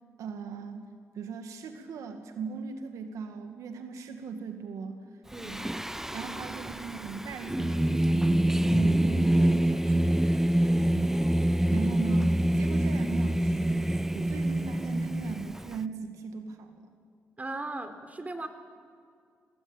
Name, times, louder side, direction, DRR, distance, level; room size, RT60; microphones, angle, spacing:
voice 1, 0.2-0.8 1.1-5.0 5.4-5.7 6.1-10.3 11.2-16.9, right 5 dB, 80° right, 6 dB, 2.0 m, -39 dB
Singing, 5.4-15.8, right 1 dB, 5° right, 0.8 m, -26 dB
voice 2, 17.4-18.5, right 2 dB, 25° right, 7 dB, 3.6 m, -37 dB
27.5 x 18.5 x 9.0 m, 2.2 s
supercardioid pair, 60°, 5 cm